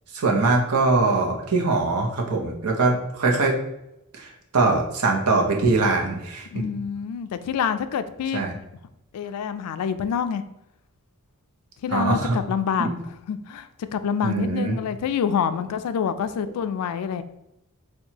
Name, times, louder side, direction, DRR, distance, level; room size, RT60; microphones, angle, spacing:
voice 1, 0.1-3.6 4.1-6.6 8.3-8.5 11.9-12.4 12.8-13.0 14.2-14.8, right 3 dB, 80° right, 1 dB, 0.7 m, -22 dB
voice 2, 6.5-8.6 9.1-10.4 11.8-17.2, left 7 dB, 80° left, 11 dB, 0.3 m, -27 dB
4.4 x 2.2 x 2.8 m, 0.87 s
head